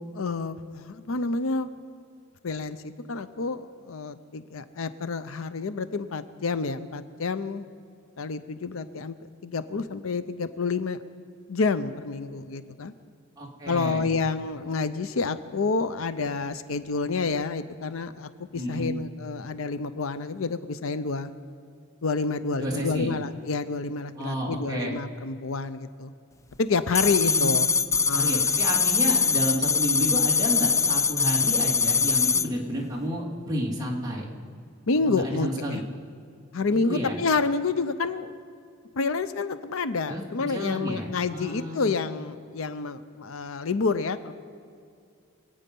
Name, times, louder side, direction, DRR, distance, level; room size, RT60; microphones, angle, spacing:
voice 1, 0.0-1.7 2.4-7.7 8.2-11.0 11.5-12.9 13.7-21.3 22.0-26.1 26.6-27.7 28.1-28.5 34.9-35.8 36.5-38.3 38.9-44.3, left 4 dB, 75° left, 12 dB, 0.6 m, -29 dB
voice 2, 13.4-14.0 18.5-19.0 22.6-23.1 24.1-24.9 27.0-27.6 28.1-34.3 35.1-35.8 36.7-37.1 40.1-42.0, equal, 20° right, -3 dB, 2.6 m, -31 dB
sound 1, 27.0-32.5, left 5 dB, 15° left, 0.4 m, -23 dB
25.5 x 8.8 x 5.4 m, 2.4 s
head